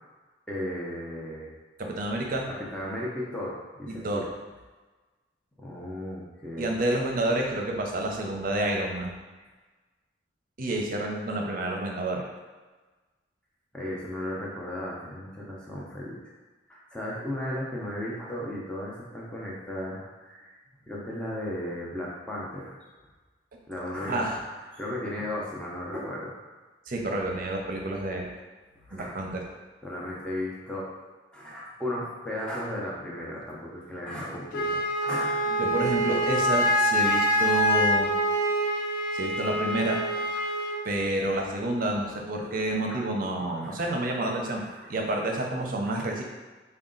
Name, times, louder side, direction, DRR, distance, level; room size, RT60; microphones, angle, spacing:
voice 1, 0.5-1.5 2.5-4.2 5.6-6.7 13.7-16.2 16.7-20.6 20.9-22.8 23.7-26.3 27.1-27.2 28.9-29.2 29.8-30.9 31.3-35.5 40.4-40.8 42.4-42.5 42.9-43.1 43.4-43.8 44.6-44.9 45.9-46.0, left 1 dB, 5° left, -6 dB, 0.6 m, -35 dB
voice 2, 1.8-2.5 3.9-4.3 6.6-9.1 10.6-12.3 24.1-24.4 26.9-28.3 28.9-29.4 35.5-38.1 39.1-40.0 40.8-44.6 44.9-46.2, right 1 dB, 50° right, 1 dB, 0.6 m, -29 dB
Wind instrument woodwind instrument, 34.5-40.8, equal, 55° left, 0.5 m, -25 dB
4.1 x 2.2 x 3.8 m, 1.3 s
head